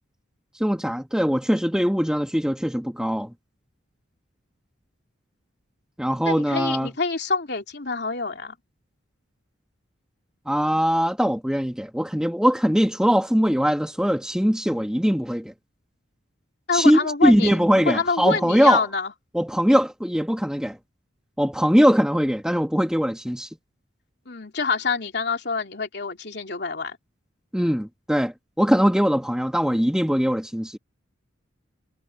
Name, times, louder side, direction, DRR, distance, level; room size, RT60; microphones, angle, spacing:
voice 1, 0.6-3.3 6.0-6.9 10.5-15.5 16.7-18.8 19.3-20.8 21.4-23.5 27.5-30.8, equal, 5° right, 1.4 m, -21 dB
voice 2, 6.2-8.5 16.7-17.6 17.9-19.1 24.3-27.0, left 4 dB, 55° left, 3.2 m, -26 dB
head